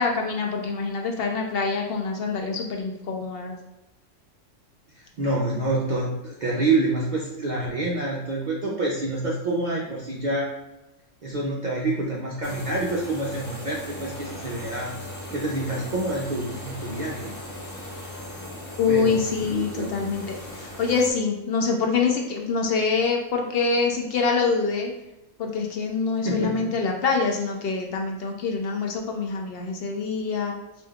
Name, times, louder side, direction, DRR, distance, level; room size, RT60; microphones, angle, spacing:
voice 1, 0.0-3.6 18.8-24.9 25.4-30.5, left 4 dB, 60° left, 2 dB, 0.7 m, -25 dB
voice 2, 5.0-10.5 11.2-14.9 15.3-17.3 17.7-17.9 18.9-19.9 26.2-26.7, right 2 dB, 60° right, -3 dB, 0.4 m, -27 dB
sound 1, 12.4-21.1, left 1 dB, 25° left, 0.4 m, -38 dB
5.0 x 2.6 x 2.3 m, 0.93 s
omnidirectional pair, 1.3 m